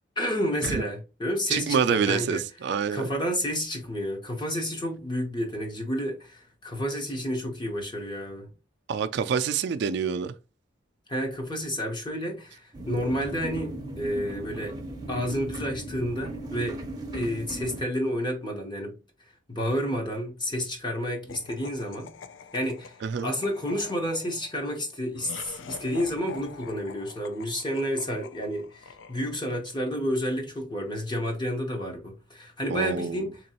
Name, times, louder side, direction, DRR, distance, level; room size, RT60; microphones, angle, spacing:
voice 1, 0.2-2.4 2.9-8.5 11.1-14.8 15.1-16.8 17.1-19.0 19.5-22.1 22.5-22.9 23.2-33.4, equal, 25° left, 0.9 m, -30 dB
voice 2, 1.5-3.1 8.9-10.3 23.0-23.3 32.7-33.2, right 6 dB, 60° right, 0.3 m, -27 dB
sound 1, 12.7-17.8, right 2 dB, 20° right, 0.6 m, -37 dB
Laughter, 21.3-29.7, left 5 dB, 70° left, 0.4 m, -45 dB
3.8 x 3.0 x 2.8 m
head